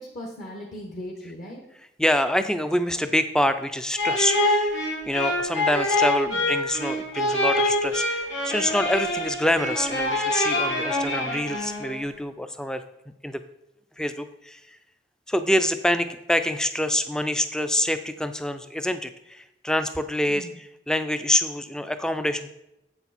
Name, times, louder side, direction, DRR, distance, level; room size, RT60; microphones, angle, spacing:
voice 1, 0.0-1.6 6.3-6.5 20.3-20.5, equal, 45° left, -2 dB, 1.1 m, -38 dB
voice 2, 2.0-4.8 5.0-13.4 14.0-14.6 15.3-22.5, left 1 dB, 5° left, 10 dB, 0.3 m, -26 dB
sound 1, 3.9-12.0, left 1 dB, 80° left, 2.1 m, -25 dB
7.8 x 7.1 x 4.1 m, 0.86 s
head